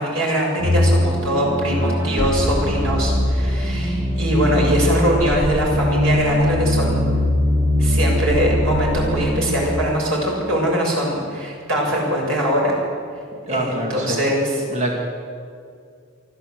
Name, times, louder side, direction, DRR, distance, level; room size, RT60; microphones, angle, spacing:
voice 1, 0.0-7.1 7.8-12.8 13.5-14.6, equal, 90° right, -2 dB, 7.0 m, -22 dB
sound 1, 0.6-9.6, left 1 dB, 60° right, 4.4 m, -21 dB
voice 2, 13.5-14.2 14.7-14.9, right 1 dB, 35° right, 0 dB, 2.3 m, -25 dB
24.5 x 14.0 x 8.0 m, 2.3 s
head